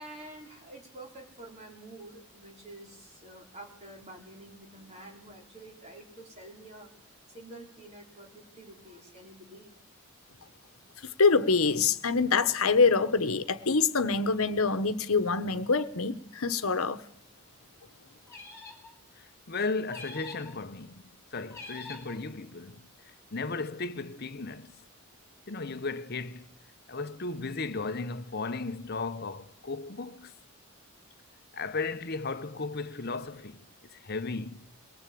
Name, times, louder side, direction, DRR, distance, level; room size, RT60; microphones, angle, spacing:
voice 1, 0.0-9.7, right 1 dB, 30° right, 4.2 m, -48 dB
voice 2, 11.0-17.0, left 4 dB, 75° left, 1.2 m, -25 dB
sound 1, 18.3-18.9 19.9-20.6 21.5-22.2, left 3 dB, 15° left, 4.2 m, -45 dB
voice 3, 19.2-21.0 21.3-22.8 23.3-24.7 25.5-26.5 26.9-30.3 31.5-33.6 33.9-34.7, left 3 dB, 45° left, 0.9 m, -35 dB
22.5 x 19.0 x 8.5 m
head